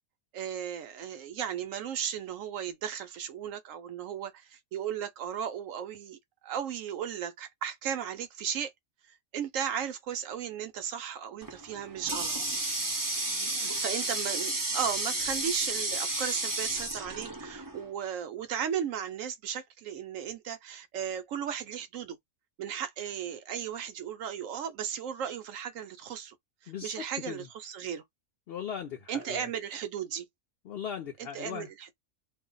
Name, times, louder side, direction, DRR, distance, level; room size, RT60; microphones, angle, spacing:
voice 1, 0.3-8.7 9.1-12.3 13.5-22.2 22.6-26.4 26.6-28.0 29.1-30.3 31.3-31.7, right 8 dB, 75° right, 1.0 m, -35 dB
Water tap faucet, 11.4-17.9, right 2 dB, 25° right, 0.4 m, -32 dB
voice 2, 13.2-13.8 26.7-27.5 28.5-29.5 30.6-31.7, left 8 dB, 60° left, 0.7 m, -39 dB
2.6 x 2.1 x 3.7 m
omnidirectional pair, 1.5 m